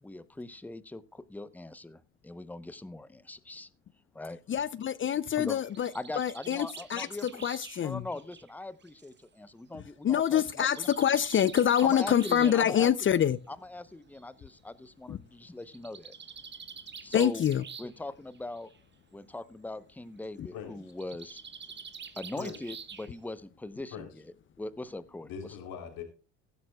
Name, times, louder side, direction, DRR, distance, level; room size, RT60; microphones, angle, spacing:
voice 1, 0.0-3.7 4.1-4.4 5.4-5.6 5.9-7.5 7.8-10.9 11.8-12.9 13.5-16.1 17.0-17.4 17.8-18.7 19.1-21.4 22.2-24.1 24.6-25.3, left 2 dB, 5° left, 0.8 m, -41 dB
voice 2, 4.5-7.1 7.4-8.0 9.7-13.4 15.1-15.2 17.1-17.6 20.4-20.5, left 9 dB, 35° left, 0.5 m, -26 dB
Bird, 5.4-9.2 10.3-12.6 13.7-13.8 14.1-14.2 14.5-14.6 15.6-18.0 18.3-18.8 20.9-23.3, right 6 dB, 30° right, 1.3 m, -47 dB
voice 3, 20.5-20.9 22.4-22.6 23.9-24.1 25.3-26.0, left 7 dB, 65° left, 3.6 m, -41 dB
16.0 x 12.5 x 2.3 m
supercardioid pair, 80°, 38 cm